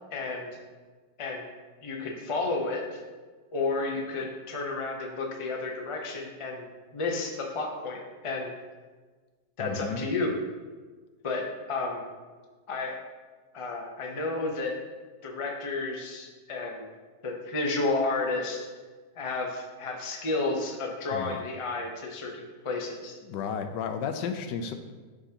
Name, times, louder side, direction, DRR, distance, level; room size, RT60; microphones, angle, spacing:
voice 1, 0.1-0.6 1.2-1.5 1.8-3.0 3.5-6.7 6.9-8.5 9.6-10.3 11.2-12.0 12.7-13.0 13.5-14.8 15.2-16.9 17.2-18.7 19.1-23.1, left 3 dB, 40° left, 1 dB, 0.4 m, -31 dB
voice 2, 9.6-10.1 21.1-21.4 23.2-24.7, left 6 dB, 80° left, 7 dB, 1.2 m, -33 dB
11.0 x 3.7 x 2.8 m, 1.4 s
omnidirectional pair, 1.9 m